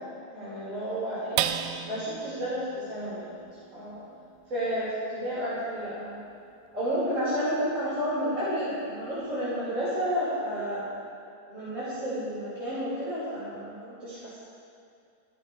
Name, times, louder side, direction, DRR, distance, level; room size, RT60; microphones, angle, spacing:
voice 1, 0.3-1.5 1.9-3.4 3.7-4.1 4.5-6.2 6.7-10.8 11.4-14.4, equal, 20° right, -13 dB, 5.4 m, -31 dB
sound 1, 1.4-8.1 8.5-8.6 9.0-9.5, right 11 dB, 90° right, 2.8 m, -37 dB
26.5 x 14.5 x 3.5 m, 2.4 s
omnidirectional pair, 4.9 m